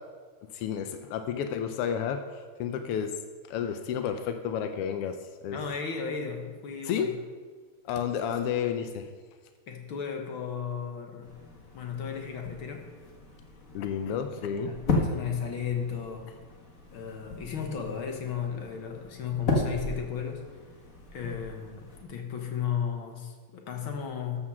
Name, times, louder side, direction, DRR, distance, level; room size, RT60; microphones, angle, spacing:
voice 1, 0.5-3.1 3.5-5.6 6.8-7.1 7.8-9.1 13.7-15.0, left 8 dB, 80° left, 7 dB, 1.3 m, -31 dB
voice 2, 5.5-7.1 9.7-11.3 11.7-12.9 14.1-16.3 16.9-20.4 21.1-24.4, left 7 dB, 55° left, 3 dB, 1.6 m, -35 dB
sound 1, 11.2-22.0, left 2 dB, 40° left, 1.4 m, -35 dB
13.0 x 7.3 x 6.2 m, 1.5 s
omnidirectional pair, 3.3 m